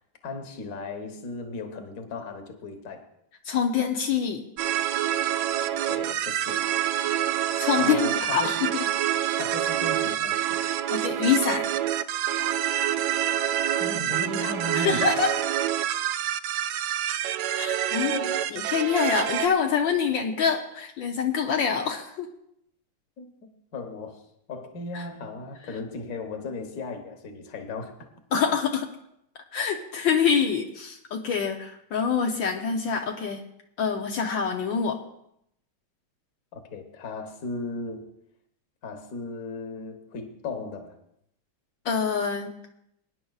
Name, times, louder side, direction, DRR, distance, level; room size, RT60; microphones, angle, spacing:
voice 1, 0.2-3.0 5.8-6.6 7.8-8.6 9.4-10.6 13.8-15.1 17.9-18.5 23.2-23.3 23.7-24.2 24.5-27.9 28.3-28.4 36.5-38.1 38.8-41.0, left 2 dB, 50° left, 5 dB, 1.6 m, -36 dB
voice 2, 3.4-4.4 7.1-7.2 7.6-8.7 10.9-11.6 14.7-15.3 17.6-18.1 18.5-22.3 24.9-25.0 28.3-28.8 29.5-33.4 33.8-35.0 41.8-42.5, left 6 dB, 70° left, 2 dB, 1.6 m, -25 dB
sound 1, 4.6-19.5, right 11 dB, 75° right, 0.9 m, -27 dB
23.5 x 10.0 x 2.4 m, 0.75 s
omnidirectional pair, 2.2 m